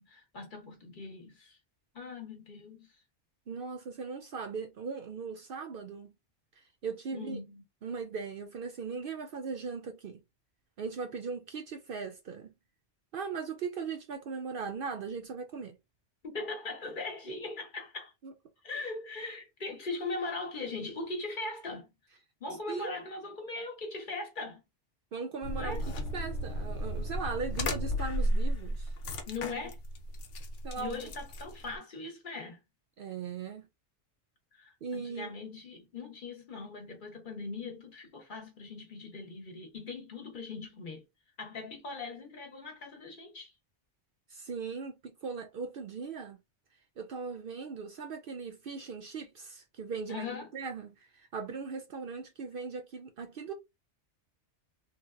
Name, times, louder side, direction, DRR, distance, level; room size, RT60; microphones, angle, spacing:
voice 1, 0.0-1.6 1.9-2.9 7.1-7.6 16.2-18.1 18.6-21.9 22.4-24.6 25.6-25.8 29.3-29.8 30.8-32.6 34.5-41.0 41.4-43.5 50.1-50.5, left 3 dB, 50° left, 0.9 m, -40 dB
voice 2, 3.5-6.1 6.6-7.4 7.8-10.2 10.8-12.5 13.1-15.8 18.2-18.3 22.7-22.9 25.1-28.9 30.6-31.0 33.0-33.7 34.8-35.3 44.3-46.4 47.0-50.3 50.5-53.5, right 5 dB, 60° right, 0.6 m, -39 dB
sound 1, 25.4-31.7, equal, 85° left, 1.0 m, -34 dB
3.3 x 2.2 x 2.3 m
omnidirectional pair, 1.2 m